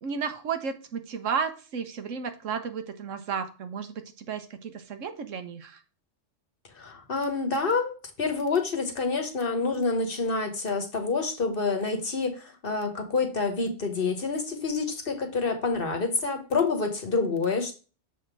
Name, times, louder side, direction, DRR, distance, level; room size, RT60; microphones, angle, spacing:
voice 1, 0.0-5.8, right 6 dB, 80° right, 8 dB, 1.3 m, -33 dB
voice 2, 6.8-17.8, left 4 dB, 50° left, 5 dB, 1.3 m, -28 dB
7.0 x 3.6 x 5.9 m, 0.36 s
omnidirectional pair, 1.3 m